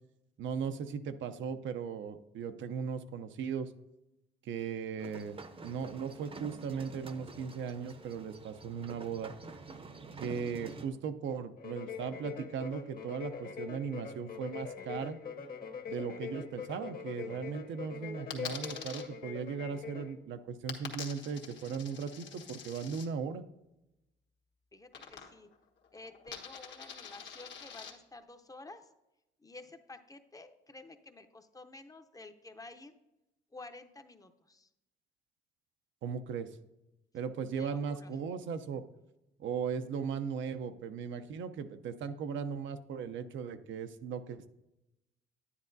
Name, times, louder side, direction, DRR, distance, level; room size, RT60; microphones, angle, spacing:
voice 1, 0.4-3.7 4.4-5.4 5.6-9.3 10.2-15.2 15.9-23.4 36.0-36.5 37.1-38.8 39.4-44.5, right 6 dB, 75° right, 9 dB, 0.6 m, -37 dB
sound 1, 5.0-10.9, right 3 dB, 30° right, 0.7 m, -48 dB
sound 2, 11.6-20.1, left 6 dB, 45° left, 1.1 m, -43 dB
Coin (dropping), 18.3-19.0 20.7-23.1 24.9-25.6 25.8-27.9, left 7 dB, 65° left, 1.3 m, -45 dB
voice 2, 24.7-25.5 25.9-28.9 29.4-32.9 33.5-34.7 37.6-38.1, left 2 dB, 15° left, 8 dB, 0.6 m, -51 dB
9.7 x 9.7 x 2.6 m, 0.93 s
cardioid pair, 90°, 20 cm